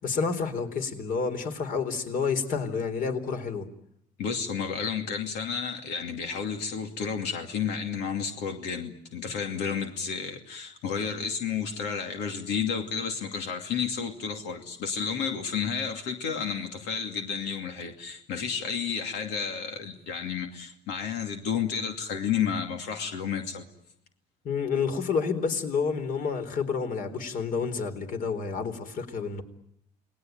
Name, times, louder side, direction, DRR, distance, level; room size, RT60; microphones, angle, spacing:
voice 1, 0.0-3.7 24.4-29.4, left 5 dB, 55° left, 7 dB, 4.0 m, -29 dB
voice 2, 4.2-23.6, left 6 dB, 90° left, 4 dB, 2.6 m, -31 dB
29.5 x 20.5 x 9.4 m, 0.73 s
cardioid pair, 110°, 17 cm